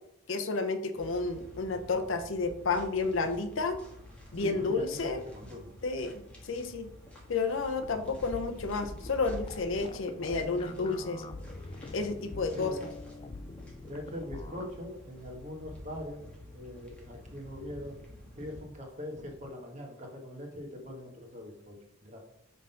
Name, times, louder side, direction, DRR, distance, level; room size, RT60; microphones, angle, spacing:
voice 1, 0.3-3.8 4.3-5.2 5.8-6.2 6.5-6.9 7.3-11.2 11.9-12.7, left 4 dB, 65° left, 8 dB, 0.6 m, -31 dB
sound 1, 0.9-18.6, left 1 dB, 5° left, 1.5 m, -49 dB
voice 2, 4.3-5.7 12.5-12.8 13.9-16.2 16.5-17.9 18.4-21.7 22.0-22.2, left 1 dB, 35° right, 0 dB, 1.4 m, -42 dB
sound 2, 7.8-14.7, left 2 dB, 25° left, 0.4 m, -45 dB
5.3 x 3.8 x 5.6 m, 0.76 s
head